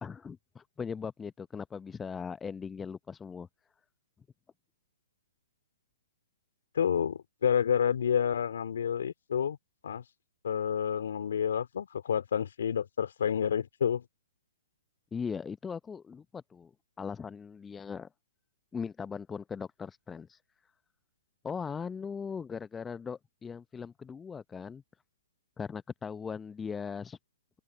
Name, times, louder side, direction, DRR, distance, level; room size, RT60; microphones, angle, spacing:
voice 1, 0.0-3.5 15.1-16.7 17.0-18.1 18.7-20.4 21.4-24.8 25.6-27.2, left 6 dB, 15° left, 0.7 m, -39 dB
voice 2, 6.7-9.6 9.8-10.0 10.4-14.0, left 8 dB, 65° left, 2.4 m, -29 dB
open air
figure-of-eight pair, 115°, 0 cm